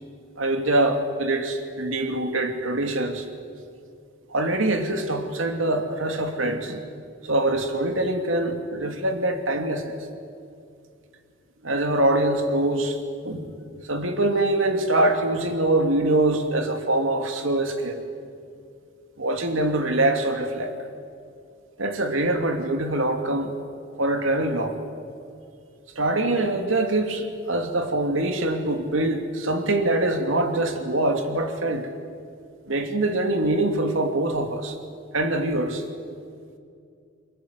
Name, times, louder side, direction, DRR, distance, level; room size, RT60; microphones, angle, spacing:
voice 1, 0.4-3.3 4.3-6.8 7.2-10.0 11.6-13.0 13.2-13.5 13.9-18.0 19.2-20.7 21.8-23.5 24.0-24.8 26.0-31.9 32.7-34.8 35.1-35.8, right 2 dB, 85° right, 5 dB, 2.8 m, -24 dB
29.0 x 22.5 x 8.3 m, 2.4 s
head